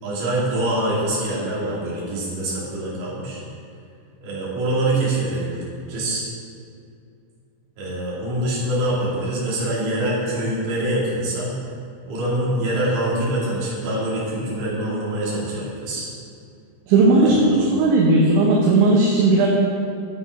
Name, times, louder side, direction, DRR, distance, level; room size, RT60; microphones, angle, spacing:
voice 1, 0.0-3.4 4.2-6.3 7.8-11.5 12.1-16.1 17.2-17.6, right 1 dB, 50° right, -7 dB, 3.7 m, -24 dB
voice 2, 16.9-19.5, right 2 dB, 75° right, -3 dB, 3.0 m, -16 dB
10.5 x 7.7 x 4.9 m, 2.5 s
omnidirectional pair, 5.9 m